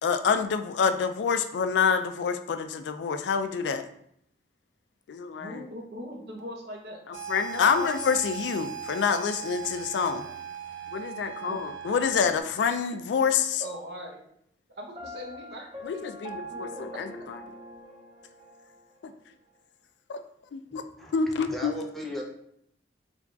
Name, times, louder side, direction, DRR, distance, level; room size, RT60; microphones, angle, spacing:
voice 1, 0.0-3.8 5.1-5.6 7.3-10.2 10.9-13.6 15.8-17.1 19.0-19.1 20.1-20.2 20.5-20.8 21.1-21.7, left 6 dB, 80° left, 9 dB, 0.3 m, -27 dB
voice 2, 5.4-7.0 11.5-11.6 13.6-14.2 14.8-16.0, equal, 70° right, 0 dB, 0.8 m, -40 dB
sound 1, 7.1-12.4, right 9 dB, 85° right, 0.4 m, -38 dB
Piano, 15.0-18.8, equal, 30° right, 0.7 m, -42 dB
voice 3, 20.7-21.1 21.4-22.2, left 1 dB, ahead, -2 dB, 0.5 m, -37 dB
3.4 x 2.3 x 3.8 m, 0.71 s
head